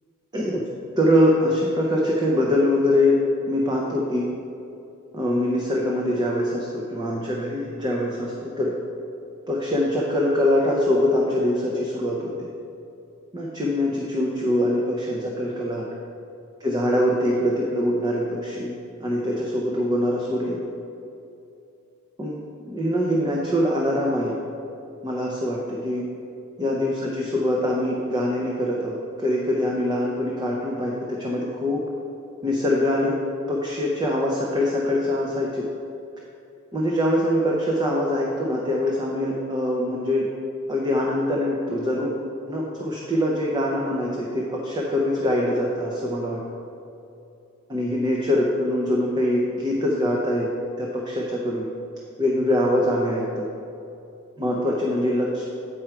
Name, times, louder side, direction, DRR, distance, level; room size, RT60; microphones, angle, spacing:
voice 1, 1.0-3.2 3.5-4.2 5.1-8.7 9.5-12.3 13.3-15.8 16.6-18.7 19.0-20.6 22.2-22.4 22.7-24.3 25.0-26.0 26.6-31.8 32.4-33.1 33.5-35.6 36.7-40.3 40.7-42.1 42.5-46.4 47.7-50.5 50.8-51.7 52.2-53.4 54.4-55.4, left 1 dB, 20° right, -3 dB, 0.6 m, -23 dB
8.8 x 4.8 x 4.5 m, 2.7 s
head